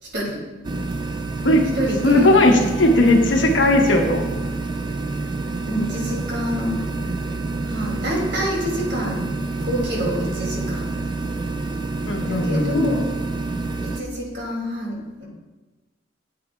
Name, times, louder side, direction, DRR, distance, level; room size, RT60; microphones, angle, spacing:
voice 1, 0.0-0.4 1.7-2.3 5.7-6.9 7.6-9.2 9.6-11.0 12.3-13.1 13.8-15.2, equal, 65° right, -2 dB, 2.5 m, -27 dB
sound 1, 0.6-14.0, right 3 dB, 25° right, 0.4 m, -27 dB
voice 2, 2.0-4.2 12.1-12.9, left 1 dB, 80° left, 2 dB, 1.1 m, -17 dB
9.8 x 8.6 x 2.3 m, 1.2 s
head